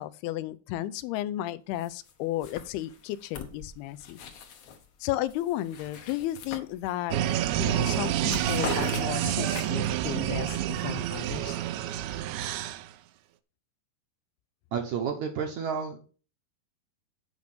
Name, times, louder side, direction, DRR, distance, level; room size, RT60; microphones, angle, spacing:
voice 1, 0.0-4.2 5.0-7.2 7.6-11.6, left 14 dB, 85° left, 2.6 m, -33 dB
sound 1, 1.8-2.1 2.4-4.9 5.3-7.2 7.5-7.7 8.0-10.0, left 6 dB, 60° left, 1.8 m, -41 dB
sound 2, 7.1-12.9, right 12 dB, 85° right, 2.6 m, -28 dB
voice 2, 14.7-16.1, right 6 dB, 65° right, 1.9 m, -31 dB
9.4 x 5.1 x 6.6 m
omnidirectional pair, 4.5 m